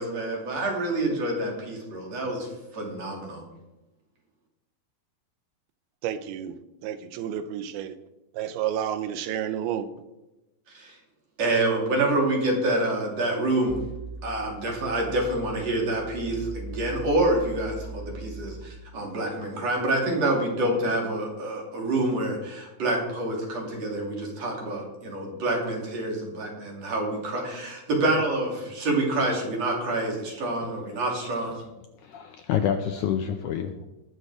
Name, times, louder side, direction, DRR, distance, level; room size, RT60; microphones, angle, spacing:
voice 1, 0.0-3.4 10.7-11.0 11.4-13.8 14.2-31.6, right 2 dB, 45° right, 3.7 m, -27 dB
voice 2, 6.0-6.6 6.8-8.0 8.3-9.9, right 10 dB, 85° right, 2.7 m, -30 dB
sound 1, 13.7-18.7, right 2 dB, 20° left, 1.6 m, -39 dB
voice 3, 32.0-33.9, left 8 dB, 80° left, 1.9 m, -28 dB
20.5 x 6.8 x 4.9 m
omnidirectional pair, 4.3 m